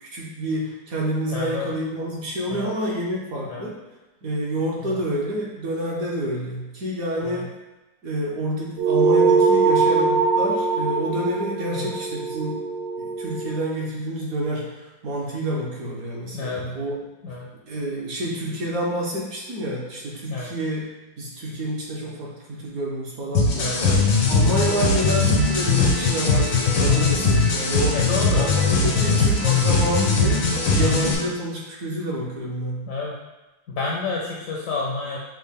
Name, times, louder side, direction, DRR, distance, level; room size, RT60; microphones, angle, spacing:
voice 1, 0.0-3.8 4.2-7.5 8.0-12.6 13.0-17.0 17.7-20.8 21.2-28.0 28.3-30.4 30.7-32.8, right 1 dB, 60° right, -4 dB, 1.0 m, -28 dB
voice 2, 1.3-1.7 2.5-2.7 3.5-3.7 4.8-5.0 7.2-7.5 11.7-11.9 16.3-16.6 17.2-17.5 20.3-20.5 23.6-24.0 27.9-28.5 29.0-29.2 32.9-33.2 33.7-35.2, left 4 dB, 70° left, -3 dB, 0.8 m, -29 dB
sound 1, 8.8-13.6, right 4 dB, 85° right, 1.3 m, -21 dB
sound 2, 23.3-31.1, left 4 dB, 85° left, 1.6 m, -20 dB
6.2 x 2.1 x 3.5 m, 1.1 s
omnidirectional pair, 1.9 m